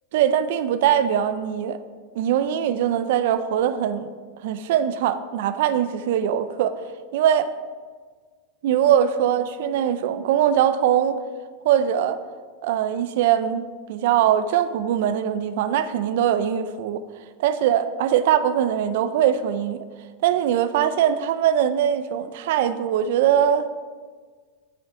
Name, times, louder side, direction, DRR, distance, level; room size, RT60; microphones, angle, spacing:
voice 1, 0.1-1.8 2.2-4.1 4.4-6.7 7.1-7.5 8.6-11.2 11.6-12.2 12.6-17.0 17.4-19.8 20.2-23.7, right 10 dB, 55° right, 11 dB, 0.5 m, -21 dB
7.6 x 6.8 x 4.7 m, 1.5 s
supercardioid pair, 175°, 0 cm